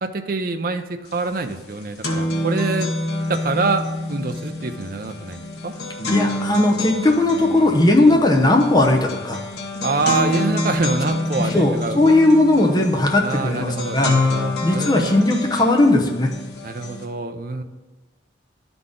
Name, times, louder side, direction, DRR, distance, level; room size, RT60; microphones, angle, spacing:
voice 1, 0.0-2.9 3.3-5.7 9.8-12.0 13.2-15.3 16.6-17.6, right 3 dB, 50° right, 7 dB, 0.5 m, -26 dB
sound 1, 1.1-1.2 1.5-17.0, left 1 dB, 55° left, 1.0 m, -27 dB
voice 2, 6.1-9.4 11.4-14.1 14.6-16.3, left 2 dB, 20° left, 1 dB, 0.8 m, -17 dB
11.5 x 4.0 x 3.7 m, 1.2 s
head